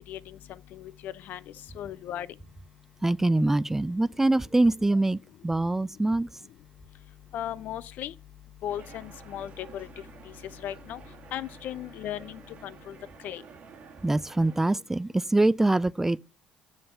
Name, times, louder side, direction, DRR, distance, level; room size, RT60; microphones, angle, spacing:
voice 1, 0.7-1.4 1.7-2.3 7.3-8.1 8.6-9.9 10.6-11.0 11.3-12.9 13.2-13.4, left 11 dB, 65° left, 0.5 m, -36 dB
voice 2, 3.0-6.3 14.0-16.2, right 2 dB, 10° right, 0.3 m, -24 dB
sound 1, 8.7-14.7, right 5 dB, 50° right, 1.5 m, -50 dB
6.9 x 5.4 x 5.6 m
supercardioid pair, 75°, 3 cm